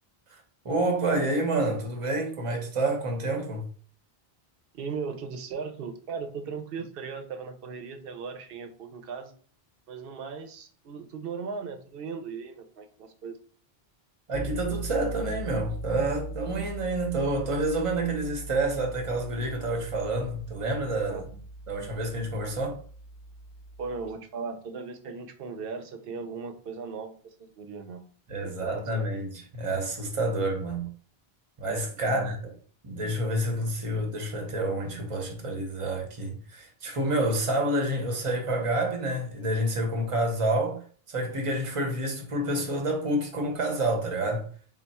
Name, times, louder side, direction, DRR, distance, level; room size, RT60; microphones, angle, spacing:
voice 1, 0.6-3.6 14.3-21.2 21.7-22.8 28.3-30.9 31.6-32.5 32.8-40.8 41.1-44.4, right 1 dB, 35° right, 0.8 m, -28 dB
voice 2, 4.7-9.3 9.9-13.4 21.1-21.2 21.7-22.0 22.5-22.6 23.8-27.1 27.4-28.0 28.4-29.1 32.0-32.3, right 5 dB, 70° right, 0.8 m, -38 dB
sound 1, 14.3-24.1, right 1 dB, 85° left, 0.8 m, -40 dB
3.4 x 2.4 x 4.1 m
omnidirectional pair, 1.0 m